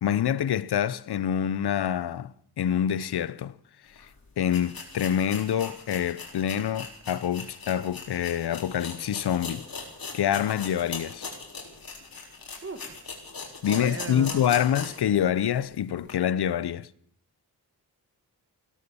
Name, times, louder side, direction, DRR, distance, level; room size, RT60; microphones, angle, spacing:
voice 1, 0.0-3.5 4.4-9.7 10.1-11.2 13.6-16.9, left 9 dB, 80° left, 0.7 m, -26 dB
sound 1, 4.0-4.1 4.5-15.1 15.5-15.6 16.1-16.2, left 4 dB, 60° left, 4.1 m, -40 dB
voice 2, 12.6-13.0 13.6-14.6, right 3 dB, 35° right, 2.3 m, -37 dB
16.5 x 12.5 x 6.9 m
wide cardioid pair, 80°, 39 cm